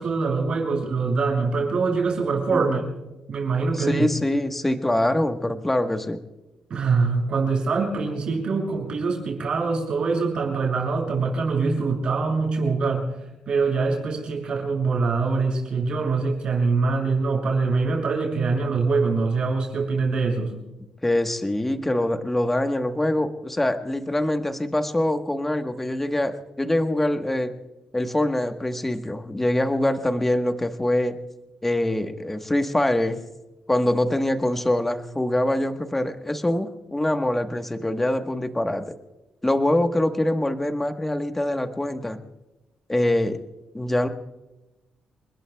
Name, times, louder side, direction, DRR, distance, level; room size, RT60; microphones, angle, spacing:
voice 1, 0.0-2.8 3.3-4.1 6.7-13.2 13.5-20.5, right 4 dB, 50° right, -1 dB, 7.0 m, -24 dB
voice 2, 2.5-2.8 3.8-6.2 21.0-27.5 27.9-31.2 31.6-33.2 33.7-38.9 39.4-42.2 42.9-43.4 43.7-44.1, left 1 dB, 10° left, 6 dB, 1.2 m, -24 dB
29.5 x 21.0 x 2.3 m, 1.0 s
cardioid pair, 140°, 2 cm